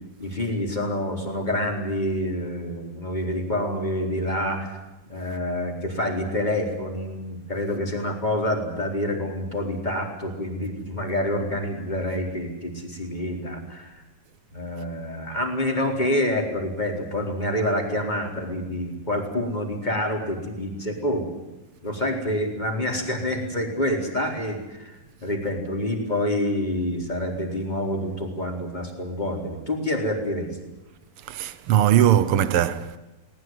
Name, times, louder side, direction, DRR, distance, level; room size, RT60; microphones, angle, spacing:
voice 1, 0.2-4.8 5.1-14.0 14.5-21.2 21.8-25.0 25.2-30.5, left 1 dB, 10° left, 4.1 m, -27 dB
voice 2, 31.3-33.0, right 11 dB, 85° right, 1.2 m, -20 dB
20.5 x 19.5 x 9.5 m
omnidirectional pair, 3.9 m